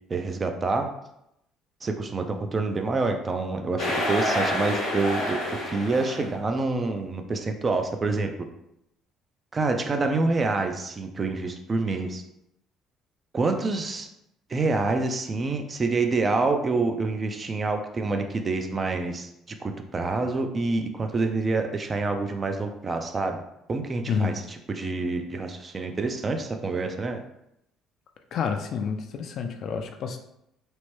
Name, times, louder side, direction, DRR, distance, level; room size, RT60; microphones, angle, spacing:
voice 1, 0.1-0.9 1.8-8.3 9.5-12.2 13.3-14.1 14.5-19.3 19.6-23.4 23.7-24.3 24.7-27.2, right 3 dB, 30° right, 5 dB, 0.4 m, -27 dB
sound 1, 3.8-6.3, left 1 dB, 80° left, 0.9 m, -28 dB
voice 2, 28.3-30.2, left 6 dB, 60° left, 5 dB, 0.3 m, -29 dB
3.0 x 2.1 x 3.0 m, 0.80 s
supercardioid pair, 80°, 0 cm